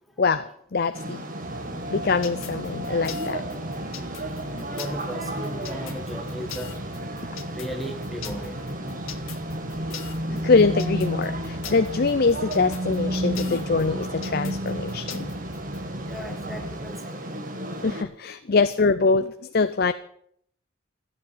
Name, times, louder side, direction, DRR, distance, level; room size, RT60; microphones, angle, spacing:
voice 1, 0.2-1.2 1.6-3.4 4.5-4.7 8.9-9.0 10.3-15.3 17.8-19.9, left 4 dB, 45° left, 11 dB, 0.6 m, -23 dB
sound 1, 0.9-18.0, equal, 40° right, 1.9 m, -32 dB
sound 2, 1.4-16.9, right 2 dB, 65° right, 0.9 m, -42 dB
sound 3, 2.2-15.8, left 10 dB, 80° left, 1.5 m, -41 dB
voice 2, 4.6-6.8 7.5-8.6 16.1-17.2, equal, ahead, 3 dB, 1.7 m, -36 dB
14.0 x 8.6 x 9.5 m, 0.67 s
head